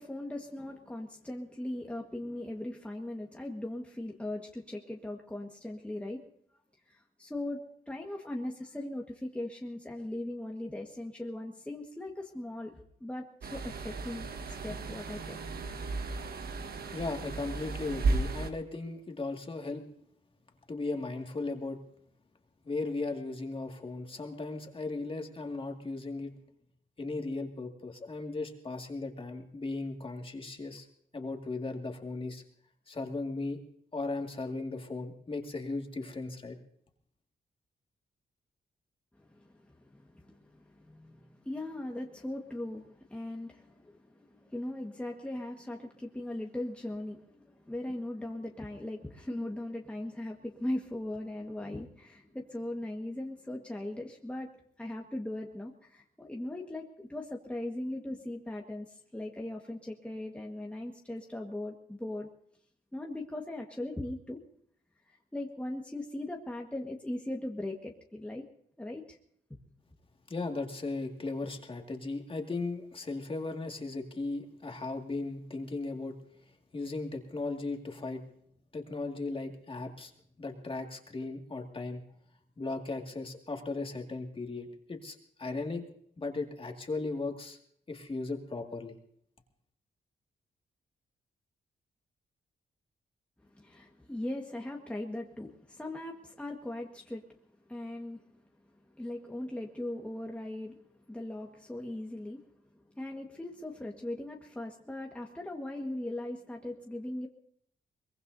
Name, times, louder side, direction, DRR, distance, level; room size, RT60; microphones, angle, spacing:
voice 1, 0.0-6.2 6.9-15.4 39.2-54.5 54.8-62.3 62.9-64.4 65.3-68.4 68.8-69.2 93.5-97.2 97.7-98.2 98.9-100.8 101.1-102.4 102.9-107.3, left 1 dB, 5° left, 0 dB, 1.5 m, -39 dB
sound 1, 13.4-18.5, right 3 dB, 60° right, 1.4 m, -34 dB
voice 2, 16.9-19.8 20.7-21.8 22.6-26.3 27.0-30.9 31.1-32.4 32.9-33.6 33.9-36.6 70.3-76.2 76.7-78.2 78.7-80.1 80.4-82.0 82.6-85.8 86.2-87.6 87.9-89.0, left 3 dB, 30° left, 3 dB, 2.1 m, -37 dB
23.0 x 22.0 x 2.7 m, 0.65 s
cardioid pair, 115°, 18 cm